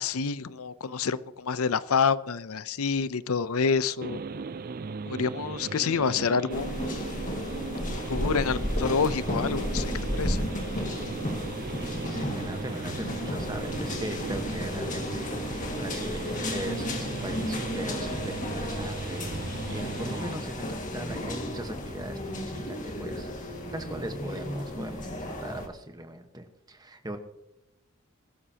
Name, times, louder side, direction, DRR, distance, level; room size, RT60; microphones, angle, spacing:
voice 1, 0.0-4.2 5.1-7.0 8.1-10.4, left 5 dB, 85° left, 16 dB, 0.6 m, -28 dB
sound 1, 4.0-20.3, right 4 dB, 40° right, 0.4 m, -38 dB
sound 2, 6.5-25.7, left 1 dB, 35° left, 1.9 m, -33 dB
voice 2, 11.7-27.2, right 1 dB, 20° right, 6 dB, 1.2 m, -40 dB
21.0 x 12.5 x 2.9 m, 0.92 s
head